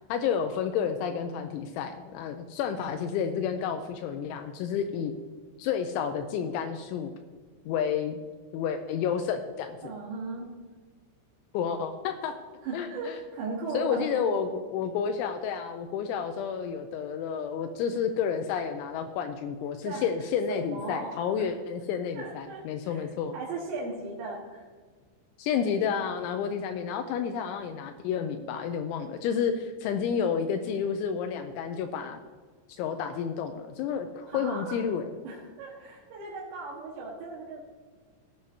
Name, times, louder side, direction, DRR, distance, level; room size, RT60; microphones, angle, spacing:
voice 1, 0.1-5.1 5.6-7.1 7.7-8.2 8.5-9.9 11.5-12.3 12.7-13.2 13.7-23.4 25.4-32.2 32.7-35.1, left 7 dB, 85° left, 6 dB, 2.7 m, -30 dB
voice 2, 9.8-10.5 12.6-14.4 19.8-20.1 20.5-21.1 21.4-21.5 22.1-24.7 34.3-34.8 35.2-37.6, right 3 dB, 65° right, -5 dB, 3.4 m, -37 dB
16.5 x 9.7 x 2.7 m, 1.5 s
omnidirectional pair, 5.9 m